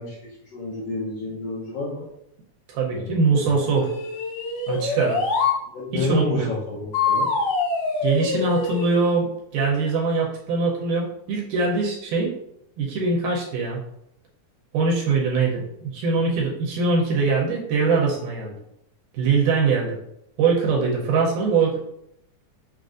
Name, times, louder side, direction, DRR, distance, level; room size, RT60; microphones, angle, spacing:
voice 1, 0.0-2.1 2.9-3.5 5.7-7.3, left 2 dB, 70° left, -5 dB, 1.5 m, -30 dB
voice 2, 2.7-3.9 4.7-5.2 5.9-6.5 8.0-12.3 12.8-13.8 14.7-15.6 15.9-18.5 19.1-20.0 20.4-21.8, right 4 dB, 85° right, -3 dB, 2.2 m, -22 dB
sound 1, 3.8-5.6 6.9-9.0, left 4 dB, 85° left, 2.4 m, -24 dB
6.0 x 2.5 x 2.5 m, 0.78 s
omnidirectional pair, 3.6 m